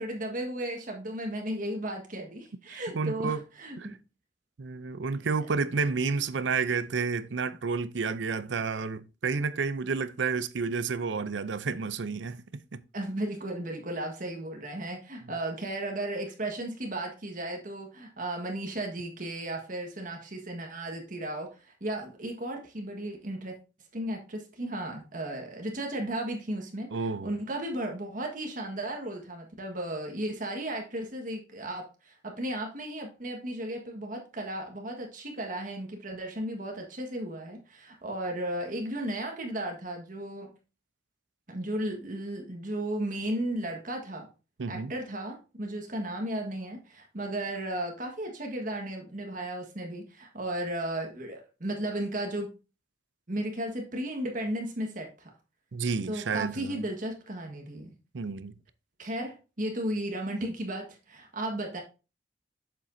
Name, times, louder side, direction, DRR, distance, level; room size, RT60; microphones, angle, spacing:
voice 1, 0.0-3.8 12.9-23.5 23.9-40.5 41.5-44.3 44.7-52.5 53.3-55.3 56.1-57.9 59.0-61.8, right 1 dB, 45° right, 1.5 m, -35 dB
voice 2, 2.7-3.4 3.8-3.9 4.6-12.8 26.9-27.3 44.6-44.9 55.7-56.8 58.1-58.5, right 4 dB, 75° right, 0.6 m, -30 dB
7.7 x 7.1 x 2.7 m
head